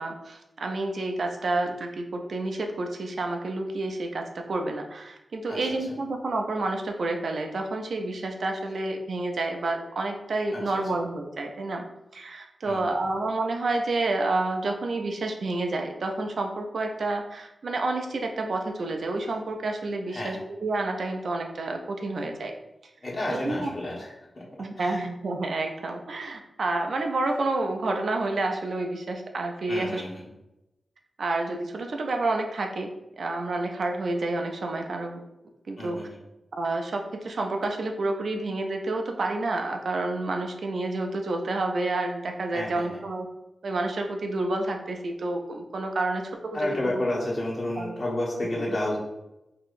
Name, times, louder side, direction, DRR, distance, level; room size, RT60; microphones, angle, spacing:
voice 1, 0.0-11.8 12.1-22.5 23.3-23.7 24.6-30.0 31.2-32.9 33.2-35.2 35.7-36.0 36.6-43.3 43.6-46.3 46.6-47.0 47.8-47.9 48.5-48.8, right 2 dB, 75° right, 3 dB, 0.4 m, -29 dB
voice 2, 23.0-24.4 24.8-25.0 29.7-30.2 35.8-36.2 42.5-43.0 46.5-49.0, left 1 dB, 50° left, -5 dB, 1.3 m, -31 dB
3.6 x 2.9 x 2.5 m, 0.92 s
cardioid pair, 45°, 0 cm